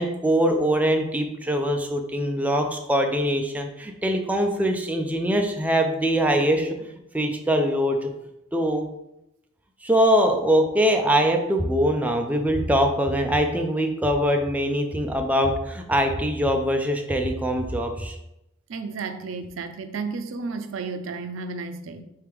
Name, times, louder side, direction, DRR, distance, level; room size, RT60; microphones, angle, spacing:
voice 1, 0.0-6.8 7.1-8.1 8.5-8.9 9.8-18.2, equal, 10° right, 4 dB, 0.4 m, -23 dB
voice 2, 18.7-22.0, right 4 dB, 85° right, 9 dB, 0.4 m, -32 dB
4.7 x 3.3 x 3.4 m, 0.86 s
head